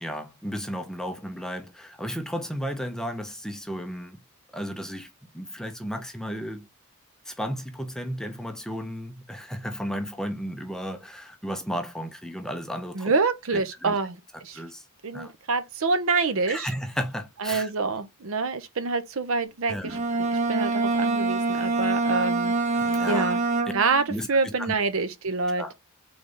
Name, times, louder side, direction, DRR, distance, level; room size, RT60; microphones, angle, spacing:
voice 1, 0.0-4.2 4.5-6.7 7.3-13.1 13.5-14.0 14.5-14.8 15.1-15.3 16.5-17.7 19.7-20.0 22.7-23.2 24.1-24.7 25.5-25.7, equal, ahead, 0.5 m, -34 dB
voice 2, 12.9-14.6 15.0-16.7 17.4-20.0 20.3-22.5 23.1-23.4 23.7-25.7, right 4 dB, 65° right, 0.7 m, -26 dB
Bowed string instrument, 19.8-24.1, right 3 dB, 30° right, 0.8 m, -25 dB
3.9 x 3.2 x 3.8 m
head